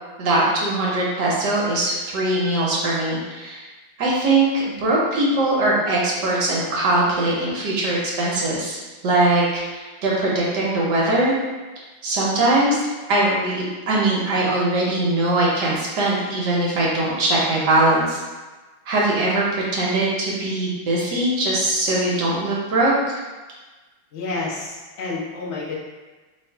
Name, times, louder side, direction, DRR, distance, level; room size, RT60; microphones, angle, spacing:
voice 1, 0.2-3.7 4.0-8.8 9.0-11.4 12.0-12.8 13.1-18.2 18.9-23.2, right 2 dB, 65° right, -4 dB, 1.2 m, -21 dB
voice 2, 24.1-25.7, left 3 dB, 70° left, -5 dB, 0.6 m, -29 dB
3.3 x 2.4 x 4.3 m, 1.3 s
omnidirectional pair, 2.3 m